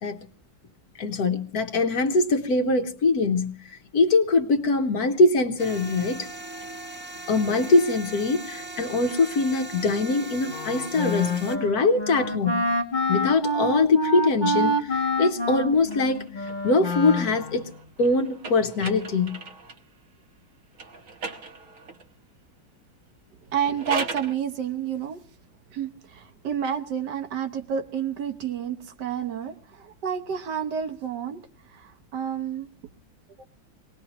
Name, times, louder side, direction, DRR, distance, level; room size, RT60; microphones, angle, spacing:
voice 1, 1.0-6.3 7.3-12.6 13.1-17.6 18.0-19.4, left 3 dB, 60° left, 1.3 m, -23 dB
sound 1, 5.6-11.6, right 2 dB, 5° right, 1.0 m, -38 dB
Wind instrument woodwind instrument, 10.5-17.8, left 1 dB, 30° left, 0.9 m, -27 dB
sound 2, 15.8-19.9 20.7-22.1 23.5-24.4, right 3 dB, 50° right, 1.3 m, -38 dB
voice 2, 23.5-25.2 25.7-31.4 31.7-32.7 33.4-33.5, right 8 dB, 65° right, 1.5 m, -30 dB
24.0 x 19.0 x 2.9 m
omnidirectional pair, 2.0 m